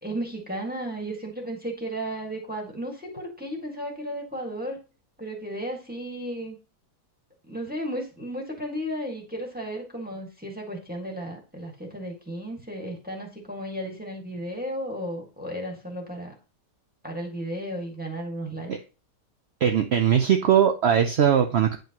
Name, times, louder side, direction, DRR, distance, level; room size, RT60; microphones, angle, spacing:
voice 1, 0.0-4.8 5.2-6.6 7.5-16.3 17.0-18.7, equal, 5° right, 0 dB, 1.5 m, -34 dB
voice 2, 19.6-21.8, right 8 dB, 70° right, 5 dB, 0.6 m, -20 dB
9.1 x 5.3 x 2.9 m, 0.33 s
omnidirectional pair, 1.8 m